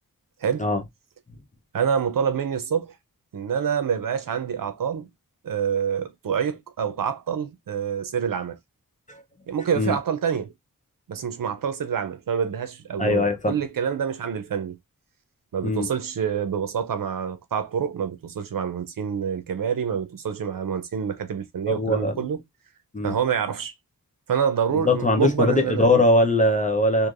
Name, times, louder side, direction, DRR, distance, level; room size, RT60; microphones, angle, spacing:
voice 1, 1.7-3.0 3.3-5.1 5.4-8.6 9.5-10.5 11.1-14.8 15.5-22.4 23.0-23.7 24.3-26.0, right 7 dB, 75° right, 0.6 m, -27 dB
voice 2, 13.0-13.5 15.6-15.9 21.7-22.1 22.9-23.1 24.8-27.1, left 2 dB, 20° left, 0.7 m, -21 dB
3.1 x 2.6 x 2.5 m
wide cardioid pair, 125°, 34 cm